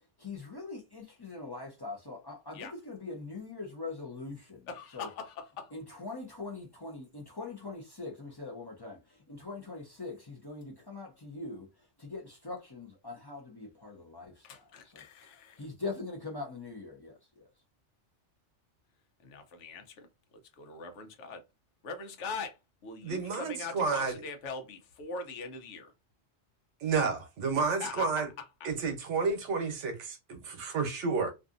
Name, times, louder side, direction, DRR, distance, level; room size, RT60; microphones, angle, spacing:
voice 1, 0.2-4.7 4.9-5.1 5.7-9.0 9.3-11.7 12.0-14.5 14.9-15.0 15.6-17.5, left 3 dB, 30° left, 0.4 m, -42 dB
voice 2, 4.7-5.7 14.4-15.7 19.2-20.1 20.6-21.4 21.8-25.9 27.8-28.7, left 4 dB, 85° left, 1.0 m, -42 dB
voice 3, 23.0-24.2 26.8-28.3 28.6-31.3, right 4 dB, 80° right, 1.0 m, -31 dB
2.5 x 2.5 x 2.4 m
omnidirectional pair, 1.2 m